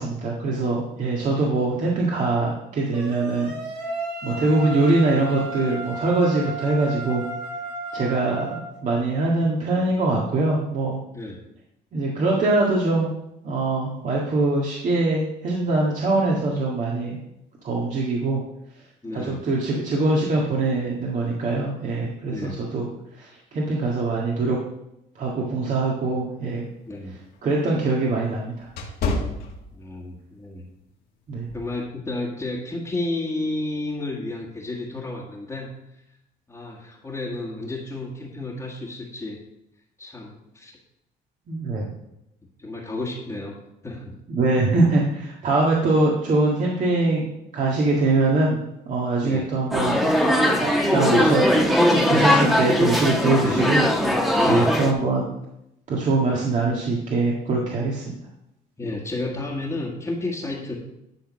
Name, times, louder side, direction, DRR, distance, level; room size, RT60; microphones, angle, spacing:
voice 1, 0.0-3.6 4.2-7.2 7.9-11.0 11.9-13.1 13.4-17.2 17.6-18.4 19.1-22.9 23.2-24.6 25.2-26.7 27.4-28.7 31.3-31.5 41.5-41.9 44.3-47.2 47.5-48.6 48.9-50.0 50.6-51.4 52.1-53.8 54.4-55.3 55.9-58.2, right 2 dB, 45° right, -3 dB, 1.8 m, -23 dB
sound 1, 2.9-8.7, right 2 dB, 80° right, 2.4 m, -33 dB
voice 2, 19.0-19.4 22.3-22.6 26.9-27.2 29.7-30.7 31.5-36.2 36.5-39.4 40.0-40.7 42.4-44.2 49.2-49.5 53.4-53.6 54.4-54.7 58.8-60.7, left 2 dB, 15° left, -4 dB, 1.6 m, -32 dB
sound 2, 26.5-30.2 30.6-30.9 31.5-31.8, left 3 dB, 65° left, 1.9 m, -30 dB
sound 3, 49.7-54.9, left 1 dB, ahead, 1.3 m, -20 dB
11.5 x 3.9 x 6.3 m, 0.83 s
cardioid pair, 110°, 17 cm